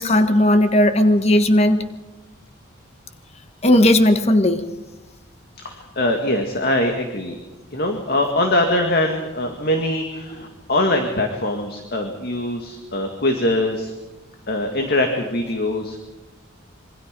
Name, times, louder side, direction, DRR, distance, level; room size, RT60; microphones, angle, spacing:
voice 1, 0.0-1.8 3.6-4.6, left 1 dB, 30° left, 9 dB, 1.4 m, -16 dB
voice 2, 5.6-7.4 7.7-13.9 14.5-16.0, left 1 dB, 50° left, 4 dB, 2.2 m, -22 dB
26.5 x 24.0 x 5.3 m, 1.1 s
head